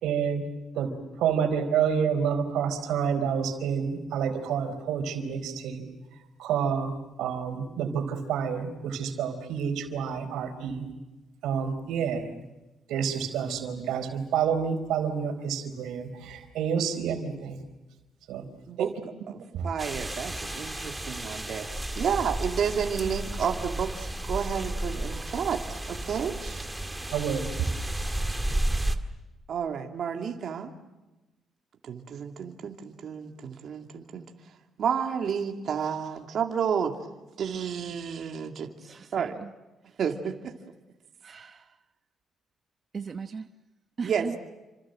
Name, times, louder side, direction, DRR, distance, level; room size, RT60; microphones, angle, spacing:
voice 1, 0.0-0.5 0.7-0.9 1.2-5.8 6.4-6.9 7.2-10.9 11.4-12.3 12.9-17.6 18.3-18.5 18.8-18.9 19.5-19.7 27.1-27.5, right 7 dB, 85° right, 4.2 m, -28 dB
voice 2, 19.3-21.7 22.0-26.6 29.5-30.7 31.9-34.3 34.8-37.0 37.4-38.7 39.1-39.4 40.0-40.5 44.0-44.4, right 7 dB, 60° right, 2.6 m, -31 dB
sound 1, 19.8-29.0, right 1 dB, 10° right, 2.1 m, -32 dB
voice 3, 38.8-39.5 41.2-41.6 42.9-43.5 44.0-44.4, right 5 dB, 40° right, 1.0 m, -37 dB
29.0 x 26.0 x 7.7 m
cardioid pair, 90°, 0 cm